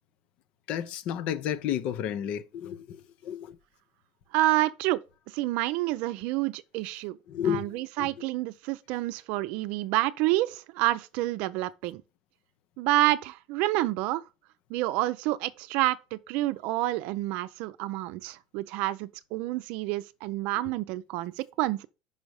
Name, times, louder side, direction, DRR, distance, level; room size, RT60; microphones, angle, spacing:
voice 1, 0.7-3.6 7.3-8.3, left 10 dB, 55° left, 0.7 m, -32 dB
voice 2, 4.3-5.0 5.3-7.2 7.5-12.0 12.8-14.2 14.7-21.9, right 17 dB, 65° right, 0.5 m, -28 dB
5.5 x 5.2 x 4.8 m
supercardioid pair, 110°, 3 cm